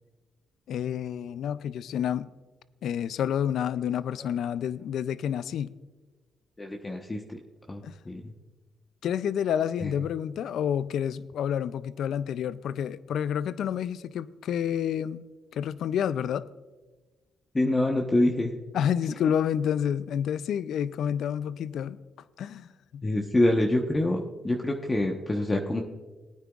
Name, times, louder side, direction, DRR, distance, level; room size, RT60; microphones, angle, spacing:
voice 1, 0.7-2.3 2.8-5.8 7.8-7.9 9.0-15.2 15.5-16.5 18.7-22.0 22.4-23.0, left 9 dB, 75° left, 0.4 m, -29 dB
voice 2, 6.6-7.4 7.7-8.3 9.8-9.9 17.5-18.6 23.0-25.8, left 1 dB, 25° left, 1.0 m, -26 dB
19.0 x 9.3 x 2.4 m
cardioid pair, 75°, 0 cm